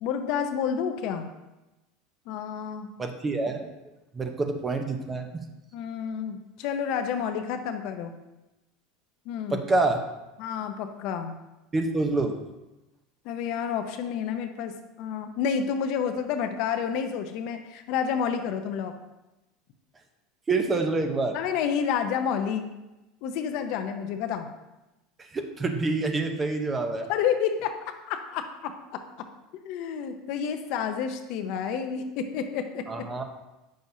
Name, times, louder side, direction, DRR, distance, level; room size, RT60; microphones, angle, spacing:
voice 1, 0.0-1.3 2.3-2.9 5.7-8.1 9.3-9.6 10.4-11.4 13.2-18.9 21.3-22.7 23.2-24.5 27.1-27.8 28.1-29.3 29.6-32.8, left 7 dB, 60° left, 7 dB, 0.7 m, -29 dB
voice 2, 3.0-3.7 4.1-5.4 9.5-10.0 11.7-12.4 20.5-21.4 25.2-27.1 32.9-33.2, right 3 dB, 25° right, 5 dB, 0.8 m, -27 dB
8.4 x 6.3 x 2.8 m, 1.0 s
supercardioid pair, 105°, 0 cm